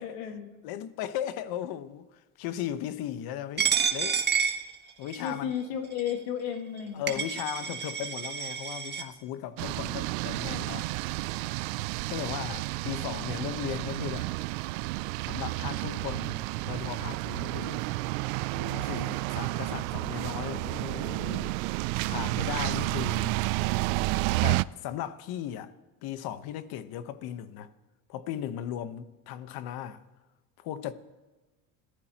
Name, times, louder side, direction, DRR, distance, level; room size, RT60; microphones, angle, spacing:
voice 1, 0.0-0.5 5.2-7.2, left 8 dB, 80° left, 2.0 m, -33 dB
voice 2, 0.6-4.2 5.0-5.5 6.9-10.9 12.1-14.3 15.3-17.9 18.5-21.6 22.1-23.4 24.4-25.7 26.0-27.7 28.1-30.0 30.6-30.9, left 11 dB, 60° left, 1.2 m, -37 dB
Coin (dropping), 3.6-5.3 6.0-6.1 6.8-6.9 7.1-9.0, right 6 dB, 25° right, 1.5 m, -29 dB
sound 1, 9.6-24.6, right 21 dB, 80° right, 0.5 m, -31 dB
26.0 x 15.0 x 3.0 m
supercardioid pair, 105°, 40 cm